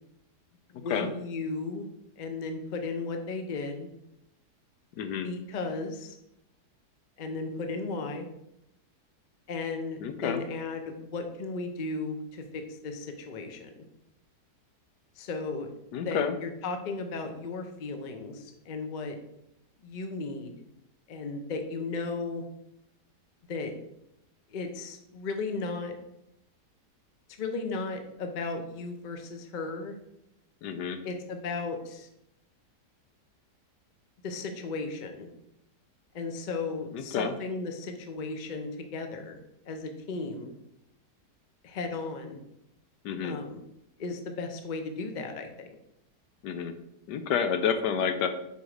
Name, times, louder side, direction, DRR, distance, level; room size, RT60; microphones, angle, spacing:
voice 1, 0.7-1.9 2.2-3.9 5.2-6.1 7.2-8.2 9.5-13.7 15.2-15.7 16.0-19.2 19.8-20.5 21.1-22.4 23.5-23.7 24.5-25.9 27.4-30.0 31.0-32.1 34.2-35.3 36.1-39.4 39.7-40.5 41.6-42.4 43.2-43.6 44.0-45.7, left 3 dB, 45° left, 5 dB, 0.6 m, -35 dB
voice 2, 5.0-5.3 10.0-10.4 15.9-16.4 30.6-31.0 36.9-37.3 43.0-43.4 46.4-46.7 47.1-48.3, left 7 dB, 80° left, 9 dB, 1.3 m, -29 dB
5.3 x 4.7 x 5.0 m, 0.81 s
omnidirectional pair, 1.8 m